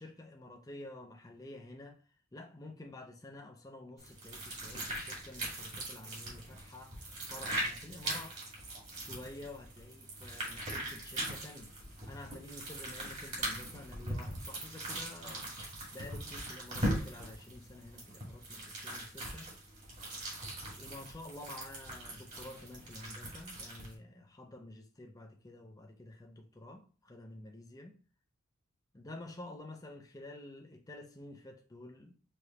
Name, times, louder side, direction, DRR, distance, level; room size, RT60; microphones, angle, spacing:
voice 1, 0.0-2.0 2.3-7.0 7.3-8.4 9.0-11.7 12.1-19.5 20.8-28.0 28.9-32.1, left 2 dB, 15° left, 0.5 m, -50 dB
sound 1, 4.0-23.9, right 1 dB, 35° right, 1.9 m, -41 dB
4.7 x 3.1 x 3.1 m
head